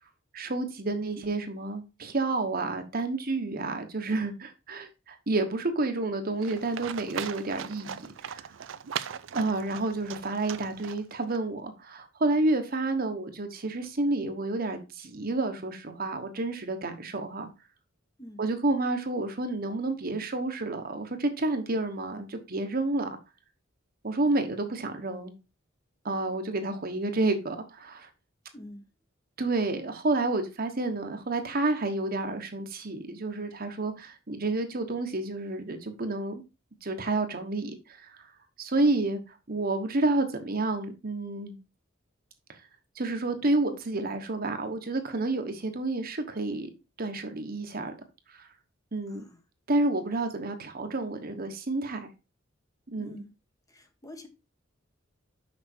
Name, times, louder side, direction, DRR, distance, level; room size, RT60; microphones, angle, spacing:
voice 1, 0.3-8.5 9.3-17.5 18.4-23.2 24.0-25.3 26.0-28.1 29.4-36.4 36.8-38.3 38.6-39.2 39.5-41.5 42.5-42.6 43.0-46.7 47.0-48.0 48.4-48.5 48.9-49.2 49.7-52.1 52.9-53.2, right 2 dB, 50° right, 1.2 m, -30 dB
Livestock farm animals working animals, 6.4-11.4, right 8 dB, 70° right, 0.5 m, -39 dB
voice 2, 28.5-28.8 49.1-49.4 53.0-53.3 53.7-54.3, left 1 dB, 20° left, 1.1 m, -46 dB
6.2 x 6.0 x 4.5 m
head